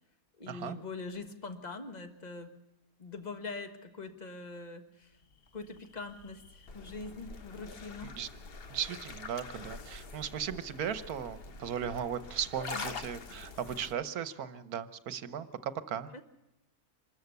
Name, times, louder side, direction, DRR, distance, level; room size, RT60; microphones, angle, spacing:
voice 1, 0.4-2.6 3.0-5.2 5.5-8.2 12.7-12.9 13.3-13.5 16.1-16.2, left 3 dB, 30° left, 7 dB, 1.4 m, -43 dB
sound 1, 5.2-13.9, left 4 dB, 45° left, 1.0 m, -45 dB
voice 2, 8.7-16.1, right 8 dB, 75° right, 13 dB, 1.4 m, -37 dB
25.0 x 13.5 x 8.1 m, 0.93 s
omnidirectional pair, 1.6 m